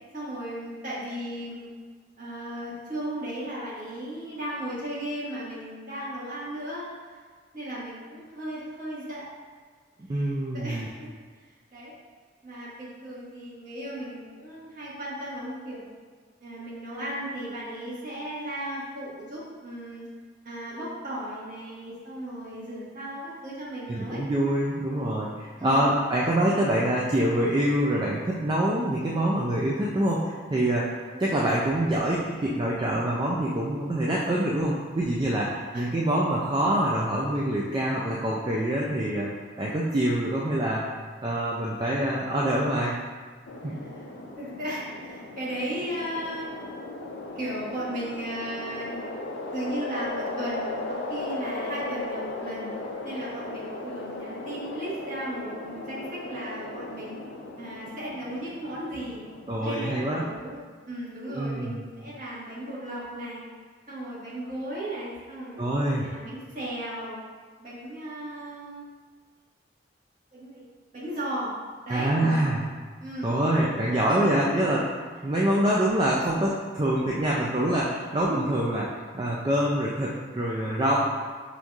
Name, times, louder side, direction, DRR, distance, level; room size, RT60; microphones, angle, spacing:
voice 1, 0.1-1.7 2.2-6.9 7.5-9.3 10.1-11.1 11.7-11.9 12.4-15.9 16.4-20.1 20.4-24.2 25.6-25.9 31.1-31.5 35.7-35.9 43.9-44.0 44.4-46.6 47.3-49.0 49.5-52.7 53.0-57.2 57.6-59.2 59.6-63.4 63.9-65.6 66.0-67.2 67.6-68.8 70.3-70.7 70.9-71.5 71.8-72.1 73.0-73.4 74.0-74.1, right 1 dB, 45° right, -9 dB, 1.5 m, -36 dB
voice 2, 10.1-10.9 23.9-30.9 31.2-39.3 39.6-40.9 41.2-42.9 43.6-43.7 59.5-60.2 61.3-61.8 65.6-66.1 71.9-72.6 73.2-74.9 75.2-81.0, right 1 dB, 25° right, -4 dB, 0.3 m, -25 dB
sound 1, 43.5-59.8, left 2 dB, 75° left, 0.5 m, -37 dB
5.9 x 2.6 x 2.4 m, 1.5 s
head